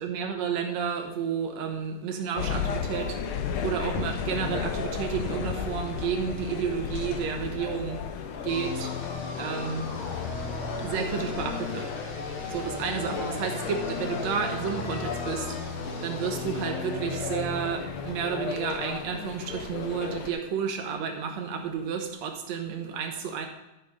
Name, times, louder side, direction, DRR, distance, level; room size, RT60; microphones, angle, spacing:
voice 1, 0.0-3.2 3.6-8.0 8.4-8.9 9.4-9.9 10.8-11.9 12.5-15.6 16.0-23.5, right 7 dB, 70° right, 4 dB, 2.4 m, -31 dB
sound 1, 2.3-20.3, left 6 dB, 70° left, 1.3 m, -37 dB
sound 2, 2.4-11.6, left 7 dB, 90° left, 2.2 m, -35 dB
sound 3, 8.5-19.1, left 3 dB, 50° left, 2.1 m, -36 dB
12.5 x 6.1 x 5.0 m, 0.97 s
omnidirectional pair, 3.3 m